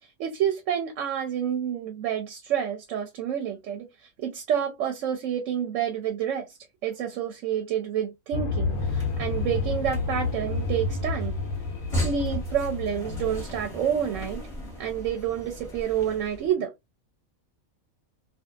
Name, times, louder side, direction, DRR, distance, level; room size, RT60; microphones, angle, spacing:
voice 1, 0.2-3.9 4.2-6.5 6.8-11.3 11.9-14.5 14.8-16.7, right 9 dB, 70° right, 0.8 m, -28 dB
sound 1, 8.3-13.4, left 3 dB, 80° left, 1.1 m, -29 dB
sound 2, 8.6-16.5, left 1 dB, 25° left, 0.9 m, -37 dB
2.6 x 2.3 x 2.2 m
omnidirectional pair, 1.5 m